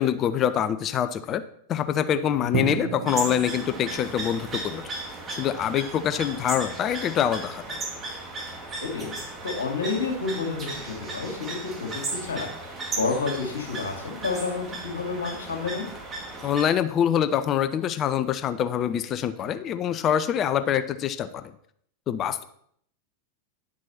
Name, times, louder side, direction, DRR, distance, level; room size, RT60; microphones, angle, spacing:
voice 1, 0.0-1.4 1.7-4.9 5.3-7.8 16.4-21.5 22.1-22.4, left 9 dB, 30° left, 12 dB, 0.6 m, -25 dB
Drum, 2.5-6.3, right 8 dB, 45° right, 1.2 m, -35 dB
sound 1, 3.1-16.6, right 3 dB, 25° right, 2.1 m, -36 dB
voice 2, 9.4-15.9, left 4 dB, 70° left, 1 dB, 2.4 m, -30 dB
10.5 x 6.3 x 4.3 m, 0.65 s
figure-of-eight pair, 90°, 0 cm